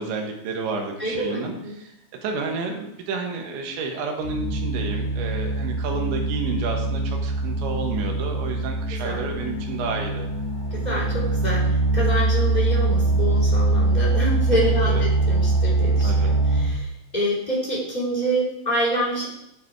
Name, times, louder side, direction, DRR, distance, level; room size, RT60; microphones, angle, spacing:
voice 1, 0.0-1.9 2.2-10.3 14.7-15.0 16.0-16.3, right 4 dB, 70° right, 2 dB, 3.5 m, -30 dB
voice 2, 1.0-1.8 8.9-9.2 10.7-19.3, right 1 dB, 15° left, -5 dB, 1.7 m, -27 dB
sound 1, 4.2-16.6, right 2 dB, 35° left, 4.3 m, -23 dB
11.0 x 8.0 x 4.7 m, 0.80 s
omnidirectional pair, 6.0 m